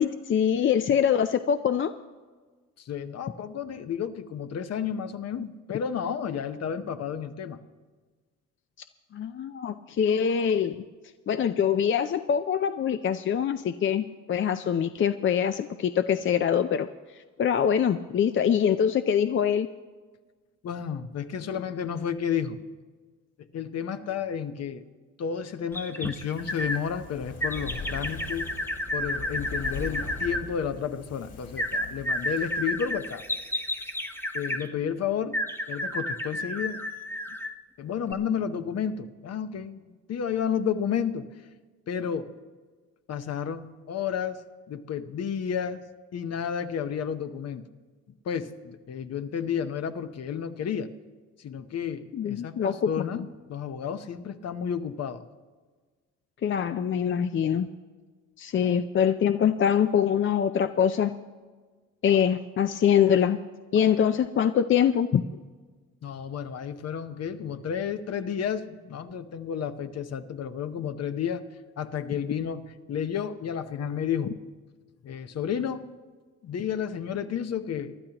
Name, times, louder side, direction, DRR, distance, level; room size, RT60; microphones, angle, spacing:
voice 1, 0.0-1.9 9.1-10.8 11.3-16.9 17.1-19.7 52.1-53.3 56.4-57.7 58.4-61.2 62.0-63.4 63.7-65.2, left 8 dB, 40° left, 9 dB, 0.5 m, -24 dB
voice 2, 2.8-7.6 20.6-22.6 23.5-24.8 25.2-28.5 28.9-33.2 34.3-36.8 37.8-39.8 40.1-41.3 41.9-42.4 43.1-45.8 46.1-47.6 48.2-50.9 51.4-55.2 66.0-71.4 71.8-74.4 75.0-75.9 76.4-78.0, left 7 dB, 55° left, 10 dB, 0.9 m, -31 dB
sound 1, 25.7-26.8 27.4-30.4 31.6-34.7 35.3-37.6 38.1-38.2, left 1 dB, 5° left, 0.9 m, -31 dB
Fire, 26.1-33.5 33.8-33.9, left 3 dB, 70° left, 3.4 m, -41 dB
24.0 x 11.5 x 2.9 m, 1.4 s
cardioid pair, 90°, 30 cm